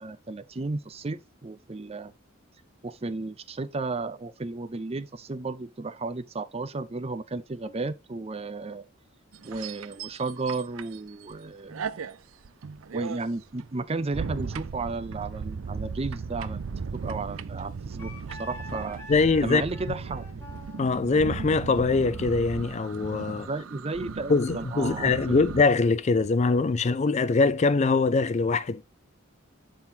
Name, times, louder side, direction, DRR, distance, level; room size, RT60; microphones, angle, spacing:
voice 1, 0.0-2.1 2.8-8.9 9.4-12.0 12.9-16.6 16.9-19.0 19.4-20.4 23.3-25.4, right 3 dB, 30° right, 0.5 m, -34 dB
sound 1, 9.3-11.4 11.7-25.6, right 5 dB, 75° right, 0.5 m, -37 dB
Wind instrument woodwind instrument, 18.0-23.4, left 1 dB, 10° left, 1.5 m, -47 dB
voice 2, 19.1-19.6 20.8-23.5 24.3-28.8, left 4 dB, 35° left, 0.4 m, -23 dB
11.5 x 3.8 x 2.8 m
head